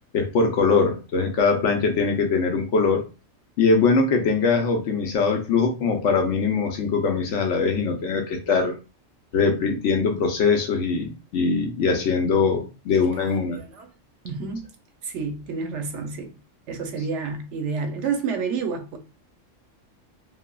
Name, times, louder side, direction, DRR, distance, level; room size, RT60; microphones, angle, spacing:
voice 1, 0.1-3.0 3.6-8.8 9.3-13.6, left 4 dB, 70° left, 0.9 m, -22 dB
voice 2, 13.2-13.9 14.2-14.7 15.0-16.3 16.7-19.0, right 5 dB, 70° right, 0.8 m, -29 dB
3.1 x 2.0 x 2.2 m
omnidirectional pair, 1.4 m